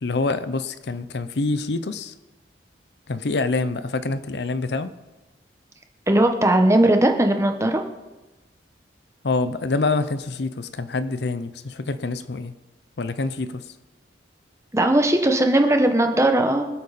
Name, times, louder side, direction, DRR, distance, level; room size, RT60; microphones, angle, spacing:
voice 1, 0.0-2.1 3.1-4.9 9.2-12.5 13.0-13.7, left 3 dB, 60° left, 0.6 m, -26 dB
voice 2, 6.1-7.8 14.7-16.7, right 1 dB, 15° right, 1.1 m, -18 dB
25.0 x 8.4 x 4.2 m
head